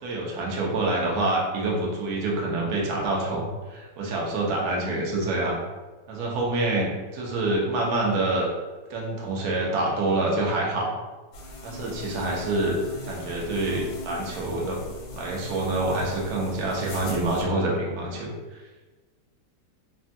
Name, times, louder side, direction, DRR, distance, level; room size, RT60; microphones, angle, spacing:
voice 1, 0.0-5.6 6.1-8.5 8.9-10.9 11.6-12.8 13.0-14.8 15.1-18.3, right 2 dB, 65° right, -2 dB, 1.0 m, -26 dB
sound 1, 11.3-17.4, left 2 dB, 70° left, 1.0 m, -40 dB
3.3 x 2.3 x 2.6 m, 1.2 s
omnidirectional pair, 2.1 m